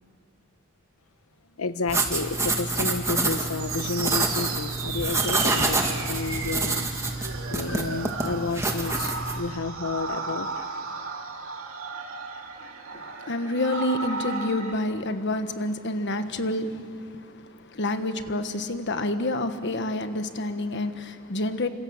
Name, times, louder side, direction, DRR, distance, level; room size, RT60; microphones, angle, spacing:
voice 1, 1.6-6.8 7.5-10.5, left 3 dB, 85° left, 1.1 m, -31 dB
sound 1, 1.9-9.4, right 3 dB, 15° right, 2.1 m, -27 dB
sound 2, 3.6-14.8, right 4 dB, 70° right, 2.5 m, -35 dB
voice 2, 12.9-21.7, left 1 dB, 55° left, 1.4 m, -28 dB
28.5 x 26.0 x 7.4 m
head